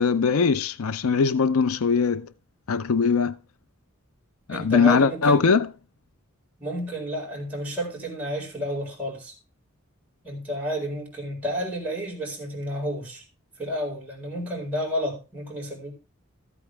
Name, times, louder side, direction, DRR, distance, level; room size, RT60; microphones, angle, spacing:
voice 1, 0.0-2.3 2.7-3.4 4.5-5.7, left 5 dB, 90° left, 0.5 m, -21 dB
voice 2, 4.5-5.4 6.6-9.3 10.2-13.2 13.6-15.9, equal, 5° right, 4.6 m, -31 dB
14.0 x 8.6 x 3.3 m
head